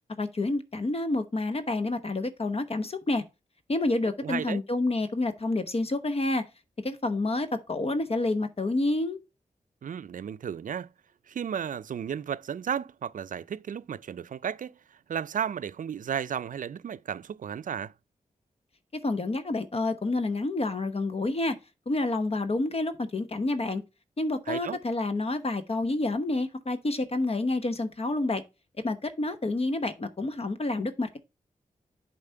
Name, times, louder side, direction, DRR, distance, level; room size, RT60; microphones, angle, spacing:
voice 1, 0.2-3.2 3.7-6.4 6.8-9.2 18.9-21.6 21.9-23.8 24.2-28.4 28.8-31.2, left 2 dB, 45° left, 1.0 m, -28 dB
voice 2, 4.2-4.6 9.8-10.9 11.3-14.8 15.1-17.9 24.5-24.8, right 8 dB, 65° right, 0.4 m, -33 dB
7.3 x 4.1 x 4.4 m
cardioid pair, 55°, 15 cm